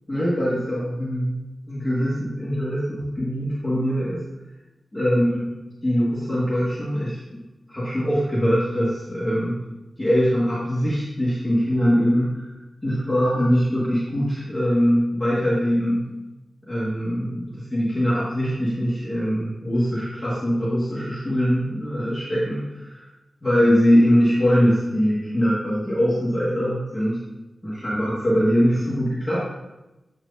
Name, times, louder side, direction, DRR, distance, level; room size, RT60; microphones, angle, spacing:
voice 1, 0.1-1.4 1.7-4.2 4.9-5.5 5.8-7.4 7.7-9.6 10.0-12.5 12.8-16.0 16.7-23.1 23.4-27.2 27.6-29.4, equal, 15° left, -9 dB, 1.8 m, -22 dB
8.1 x 4.7 x 2.7 m, 1.0 s
cardioid pair, 65°, 0 cm